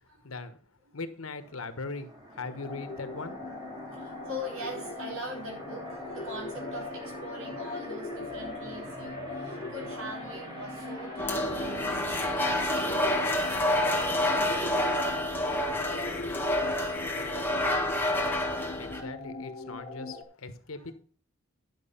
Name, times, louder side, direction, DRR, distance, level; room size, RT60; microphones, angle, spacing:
voice 1, 0.2-0.6 0.9-3.5 18.8-20.9, left 3 dB, 90° left, 1.3 m, -40 dB
sound 1, 1.4-14.1, equal, 20° right, 2.9 m, -44 dB
sound 2, 2.6-20.2, left 2 dB, 30° left, 1.8 m, -40 dB
voice 2, 3.9-14.5 18.8-19.1 20.8-20.9, equal, 75° right, 4.4 m, -42 dB
sound 3, 11.2-19.0, left 1 dB, 10° left, 1.7 m, -28 dB
11.0 x 6.2 x 5.6 m
head